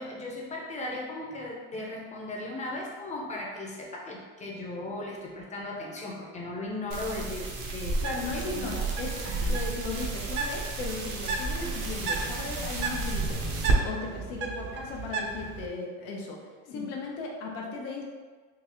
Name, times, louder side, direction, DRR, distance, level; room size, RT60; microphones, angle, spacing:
voice 1, 0.0-8.0 8.3-8.7 9.2-9.6 16.7-16.9, left 2 dB, 20° left, -2 dB, 0.6 m, -37 dB
sound 1, 6.9-13.8, right 3 dB, 55° right, 0.8 m, -31 dB
Bird, 7.9-15.7, right 4 dB, 35° right, 0.4 m, -36 dB
voice 2, 8.0-18.0, left 3 dB, 80° left, 0 dB, 0.8 m, -37 dB
3.8 x 2.4 x 3.0 m, 1.4 s
supercardioid pair, 120°, 34 cm